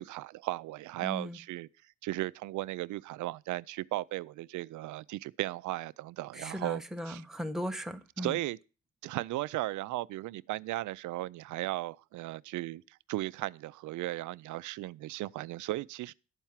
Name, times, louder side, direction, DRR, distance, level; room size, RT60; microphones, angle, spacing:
voice 1, 0.0-1.7 2.0-7.2 8.2-8.6 9.0-12.8 13.1-16.1, right 17 dB, 80° right, 0.5 m, -36 dB
voice 2, 1.0-1.4 6.4-8.4, equal, ahead, 1.2 m, -37 dB
12.0 x 4.5 x 7.2 m
cardioid pair, 90°, 30 cm